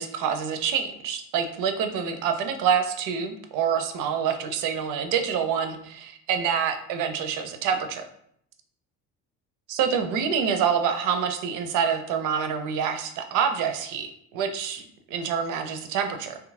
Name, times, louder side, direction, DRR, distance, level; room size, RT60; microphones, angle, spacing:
voice 1, 0.0-8.0 9.7-14.1 14.3-16.4, right 7 dB, 45° right, 7 dB, 0.4 m, -26 dB
2.6 x 2.3 x 2.5 m, 0.69 s
figure-of-eight pair, 55°, 49 cm